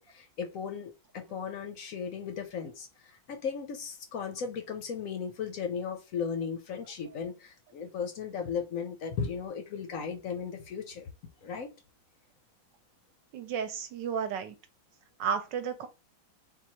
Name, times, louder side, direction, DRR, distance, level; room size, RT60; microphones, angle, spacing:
voice 1, 0.0-11.1 11.4-11.7, left 6 dB, 65° left, 0.8 m, -36 dB
voice 2, 13.3-14.5 15.2-15.9, right 7 dB, 75° right, 1.2 m, -32 dB
4.0 x 2.3 x 4.2 m
omnidirectional pair, 2.1 m